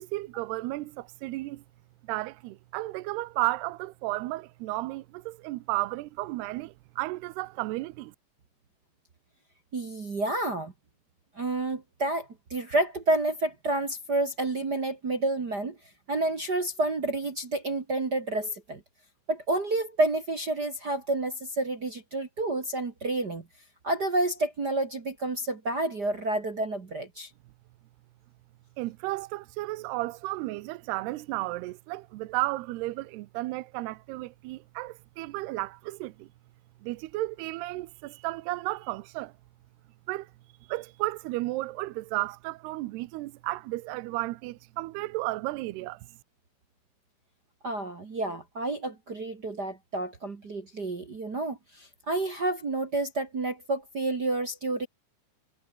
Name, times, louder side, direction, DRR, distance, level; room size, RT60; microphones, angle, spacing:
voice 1, 0.0-1.6 2.1-8.1 28.8-36.3 36.8-39.3 40.1-40.3 40.7-46.0, right 19 dB, 80° right, 2.5 m, -33 dB
voice 2, 9.7-10.7 11.3-15.7 16.1-18.8 19.3-23.4 23.8-27.3 47.6-54.9, right 2 dB, 45° right, 1.2 m, -29 dB
omnidirectional pair, 5.3 m